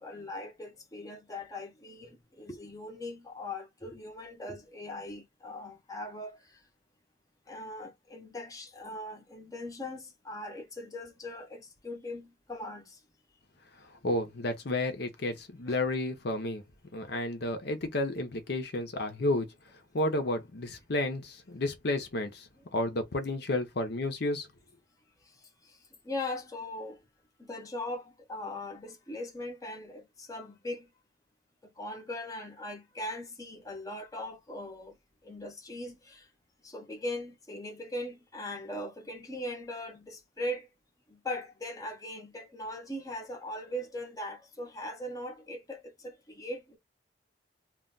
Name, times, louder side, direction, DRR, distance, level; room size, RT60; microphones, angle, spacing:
voice 1, 0.0-6.6 7.5-13.0 15.7-15.8 25.2-25.8 26.0-27.0 27.4-30.9 31.8-34.9 35.2-36.3 36.6-40.7 41.1-46.8, left 1 dB, 20° left, 0.7 m, -40 dB
voice 2, 14.0-16.6 16.9-19.5 19.9-24.5, left 1 dB, 60° left, 0.7 m, -31 dB
2.4 x 2.2 x 3.8 m
head